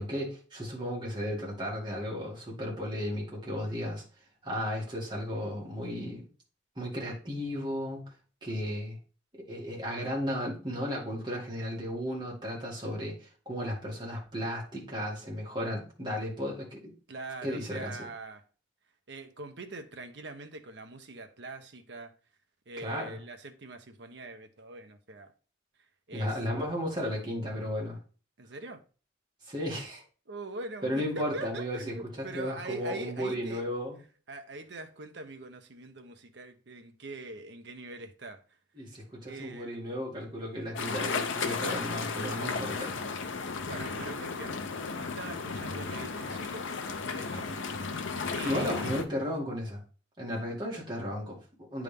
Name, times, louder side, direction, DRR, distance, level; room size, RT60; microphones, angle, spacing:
voice 1, 0.0-4.0 4.4-6.2 6.8-8.1 8.4-9.0 9.3-16.9 17.4-18.0 22.8-23.2 26.1-28.0 29.5-30.0 30.8-34.0 38.8-42.9 48.4-49.8 50.2-51.8, equal, 25° right, 2.2 m, -34 dB
voice 2, 17.1-18.4 19.1-22.1 22.7-25.3 26.1-26.4 28.4-28.8 30.3-33.7 34.3-38.4 39.3-39.9 43.7-44.6 44.9-46.7 47.0-47.5 47.9-49.0, right 2 dB, 60° right, 0.8 m, -43 dB
sound 1, 40.7-49.0, left 4 dB, 85° left, 0.7 m, -34 dB
9.4 x 3.6 x 3.5 m
head